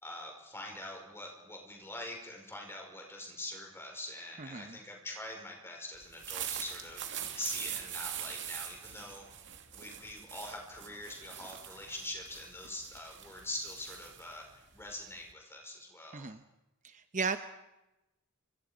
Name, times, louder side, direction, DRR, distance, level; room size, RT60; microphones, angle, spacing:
voice 1, 0.0-7.1 7.3-9.2 9.7-16.3, left 1 dB, 10° left, 1 dB, 5.3 m, -44 dB
voice 2, 4.4-4.8 16.1-16.4 16.8-17.4, right 4 dB, 35° right, 9 dB, 0.8 m, -35 dB
sound 1, 6.0-15.3, right 10 dB, 55° right, 2.3 m, -43 dB
27.0 x 26.0 x 5.2 m, 0.95 s
head